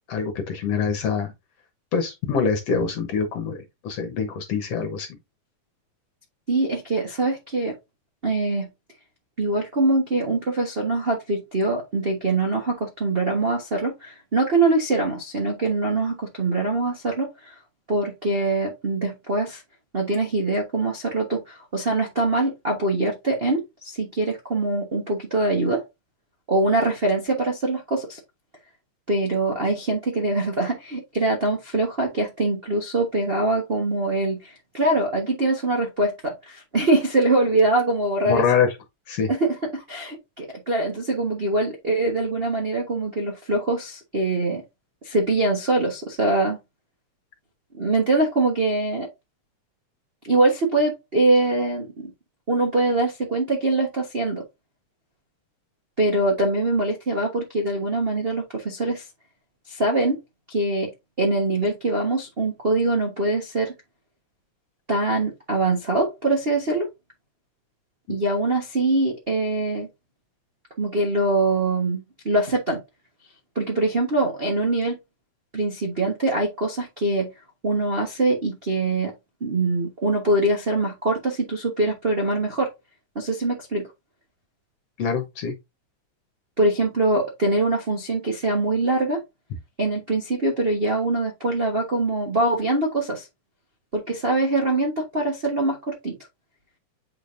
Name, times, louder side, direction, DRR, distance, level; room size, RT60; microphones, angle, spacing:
voice 1, 0.1-1.3 1.9-5.1 38.3-38.7 39.1-39.3 68.1-68.2 85.0-85.5, left 6 dB, 65° left, 2.0 m, -24 dB
voice 2, 6.5-7.7 8.2-8.7 9.4-17.5 17.9-19.6 19.9-25.8 26.5-28.2 29.1-38.4 39.3-44.6 45.0-46.6 47.8-49.1 50.2-52.1 52.5-54.4 56.0-59.0 59.7-60.2 60.5-60.9 61.2-63.7 64.9-66.9 68.1-69.9 70.8-72.8 73.5-75.0 75.5-77.3 77.6-79.1 79.4-82.7 83.1-83.9 86.6-89.2 89.8-93.3 93.9-96.2, right 2 dB, 60° right, 0.6 m, -23 dB
7.7 x 5.1 x 2.6 m
omnidirectional pair, 3.3 m